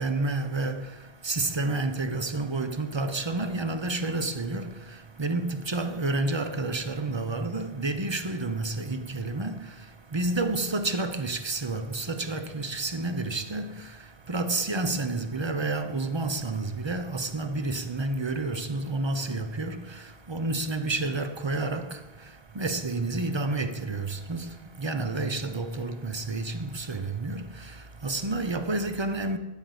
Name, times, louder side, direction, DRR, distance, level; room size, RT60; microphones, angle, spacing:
voice 1, 0.0-29.4, right 2 dB, 30° right, 0.8 m, -30 dB
12.5 x 5.2 x 7.9 m
omnidirectional pair, 1.1 m